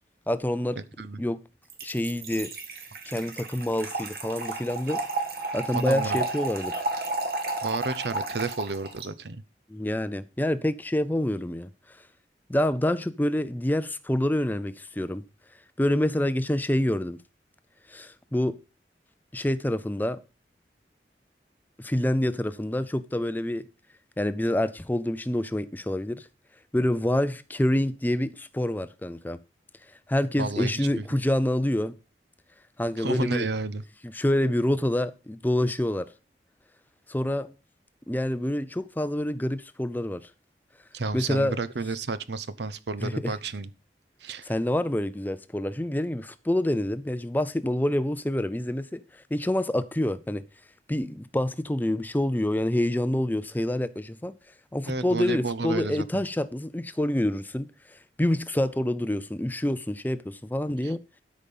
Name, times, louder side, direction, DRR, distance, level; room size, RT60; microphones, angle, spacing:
voice 1, 0.3-0.8 1.2-1.4 1.8-2.5 3.1-5.0 5.5-6.8 9.7-12.1 12.5-15.2 15.8-17.2 17.9-18.6 19.3-20.2 21.8-23.7 24.2-26.3 26.7-29.4 29.8-31.9 32.8-33.5 34.0-36.1 37.1-37.5 38.1-40.3 41.1-41.6 43.0-43.4 44.4-50.4 50.9-54.3 54.7-61.0, left 1 dB, 10° left, 0.4 m, -27 dB
Trickle dribble / Fill (with liquid), 1.7-9.1, right 2 dB, 55° right, 2.2 m, -32 dB
voice 2, 5.7-6.2 7.6-9.4 30.4-31.0 33.0-33.8 40.9-43.7 44.2-44.5 54.9-56.1 60.8-60.9, right 3 dB, 75° right, 0.8 m, -31 dB
12.5 x 5.2 x 5.4 m
head